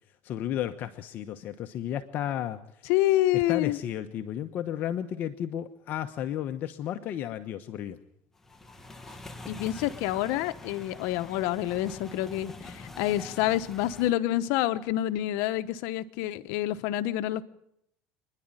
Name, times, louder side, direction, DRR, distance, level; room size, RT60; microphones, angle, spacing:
voice 1, 0.2-2.6 3.3-8.0, left 10 dB, 50° left, 1.0 m, -33 dB
voice 2, 2.9-3.8 9.5-17.5, left 14 dB, 75° left, 1.0 m, -27 dB
sound 1, 8.4-14.1, left 2 dB, 10° left, 1.5 m, -45 dB
27.0 x 11.0 x 9.0 m
supercardioid pair, 125°, 4 cm